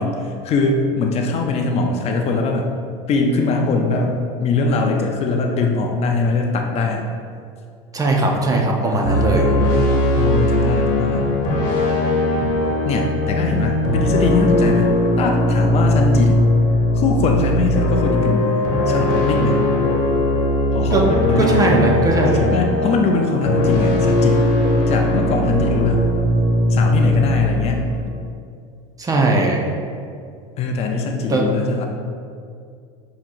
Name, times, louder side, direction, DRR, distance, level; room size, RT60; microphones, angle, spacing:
voice 1, 0.0-2.7 3.1-7.1 8.9-11.3 12.8-16.4 16.9-18.5 18.9-19.7 20.7-21.6 22.4-26.1 26.7-27.9 30.6-31.9, left 3 dB, 40° left, 2 dB, 0.5 m, -21 dB
voice 2, 7.9-9.4 20.9-21.0 21.4-22.5 29.0-29.6 31.3-31.4, right 2 dB, 20° right, 0 dB, 0.5 m, -18 dB
sound 1, 9.0-28.2, left 1 dB, 55° left, 1.1 m, -19 dB
5.9 x 2.8 x 2.5 m, 2.3 s
supercardioid pair, 110°, 16 cm